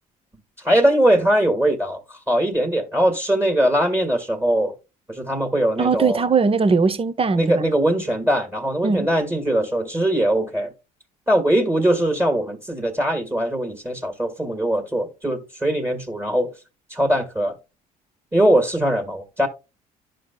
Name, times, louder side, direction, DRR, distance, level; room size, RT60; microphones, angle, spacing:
voice 1, 0.6-4.7 5.1-6.2 7.3-10.7 11.3-16.5 16.9-17.5 18.3-19.5, right 1 dB, 10° right, 1.8 m, -21 dB
voice 2, 5.8-7.6 8.8-9.1, right 4 dB, 30° right, 0.9 m, -20 dB
11.5 x 5.1 x 2.2 m
hypercardioid pair, 65°, 20 cm